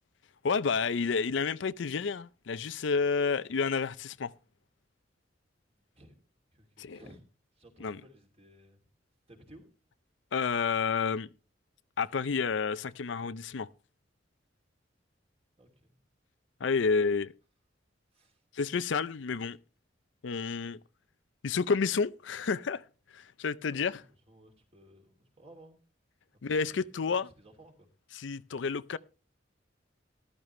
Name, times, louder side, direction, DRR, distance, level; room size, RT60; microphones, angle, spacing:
voice 1, 0.4-4.3 6.8-7.0 7.8-8.0 10.3-11.3 12.0-13.7 16.6-17.3 18.5-19.6 20.2-20.8 21.4-22.8 23.1-24.0 26.4-27.3 28.1-29.0, left 5 dB, 70° left, 0.5 m, -30 dB
voice 2, 5.7-6.2 6.5-7.3 7.6-8.8 9.3-9.7 15.6-16.0 17.0-17.1 18.1-18.4 23.7-25.8 26.5-26.9 27.2-27.9 28.5-28.8, right 1 dB, 35° right, 2.8 m, -57 dB
14.0 x 12.5 x 3.2 m
head